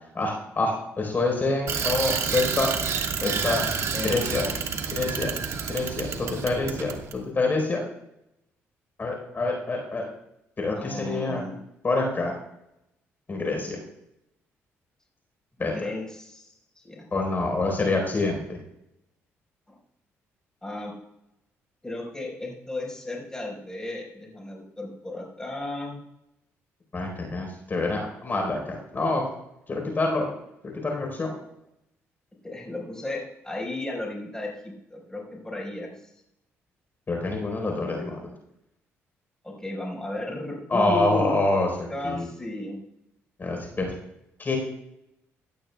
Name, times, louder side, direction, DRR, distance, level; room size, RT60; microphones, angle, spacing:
voice 1, 0.1-2.7 3.2-3.7 4.0-4.4 4.9-5.3 5.7-7.8 9.0-10.1 10.6-11.4 11.8-12.4 13.3-13.8 15.6-15.7 17.1-18.6 26.9-28.6 28.9-29.2 29.7-30.3 30.8-31.3 37.1-38.2 40.7-42.3 43.4-43.9 44.4-44.6, left 2 dB, 35° left, 1 dB, 4.1 m, -26 dB
Bicycle, 1.7-7.2, right 6 dB, 60° right, 1.5 m, -29 dB
voice 2, 3.2-3.6 3.9-4.5 10.7-11.6 15.7-17.1 19.7-19.8 20.6-20.9 21.8-26.0 32.4-36.1 39.4-41.3 41.9-42.8, left 1 dB, 10° left, -2 dB, 4.5 m, -34 dB
16.5 x 12.0 x 2.3 m, 0.84 s
supercardioid pair, 70°, 6 cm